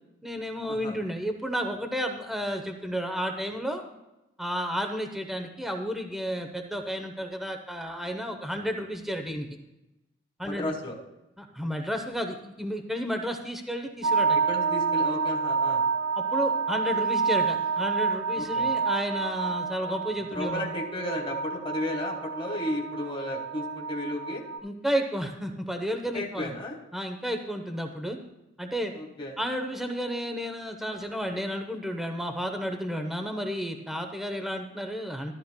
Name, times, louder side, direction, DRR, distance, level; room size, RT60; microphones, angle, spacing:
voice 1, 0.2-3.8 4.4-9.5 10.4-10.7 11.4-14.4 16.2-20.7 24.6-26.5 26.9-28.2 28.6-28.9 29.4-35.3, equal, ahead, 4 dB, 0.8 m, -32 dB
voice 2, 10.4-11.0 14.5-15.9 18.3-18.7 20.3-24.4 26.1-26.8 28.9-29.4, left 1 dB, 25° left, -1 dB, 1.4 m, -33 dB
sound 1, 14.0-24.6, right 5 dB, 85° right, 1.5 m, -28 dB
13.5 x 12.0 x 2.2 m, 0.93 s
head